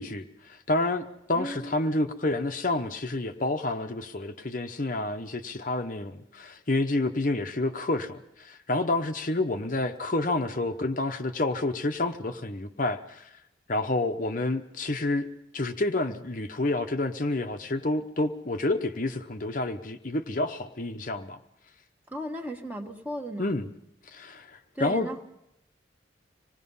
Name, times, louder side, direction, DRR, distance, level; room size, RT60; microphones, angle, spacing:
voice 1, 0.0-13.4 13.7-15.3 15.5-21.4 23.4-23.7 24.1-25.1, left 2 dB, 45° left, 5 dB, 0.9 m, -29 dB
voice 2, 1.3-1.8 22.1-23.5 24.7-25.2, right 1 dB, 10° right, 4 dB, 1.5 m, -35 dB
25.5 x 19.5 x 5.6 m, 0.81 s
head